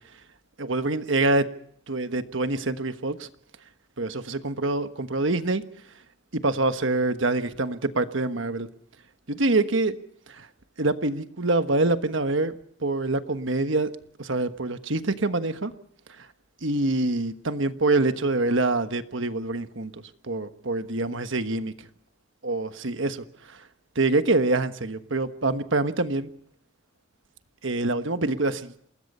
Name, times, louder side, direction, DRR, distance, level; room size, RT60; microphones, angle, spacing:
voice 1, 0.6-1.4 1.9-3.3 4.0-5.6 6.3-8.7 9.3-10.0 10.3-10.5 10.8-12.5 12.8-13.9 14.2-15.7 16.6-19.9 20.2-21.7 22.4-23.2 23.9-26.3 27.6-28.7, right 2 dB, 60° right, 10 dB, 1.3 m, -25 dB
28.0 x 20.5 x 5.6 m, 0.64 s
head